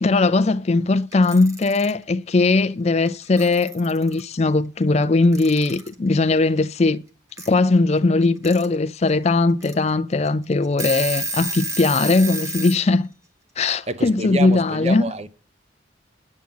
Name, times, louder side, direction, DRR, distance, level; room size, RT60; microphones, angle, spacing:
voice 1, 0.0-7.0 7.5-13.1 13.6-15.1, left 3 dB, 35° left, 0.4 m, -19 dB
Alarm / Clock, 1.1-1.9 3.1-3.2 3.4-4.2 5.3-5.9 7.4-7.5 8.2-8.7 9.1-9.2 9.6-9.7 10.3-10.4 10.6-12.8, right 2 dB, 15° right, 1.2 m, -30 dB
voice 2, 13.9-15.3, right 2 dB, 35° right, 0.7 m, -28 dB
8.8 x 7.3 x 5.6 m
head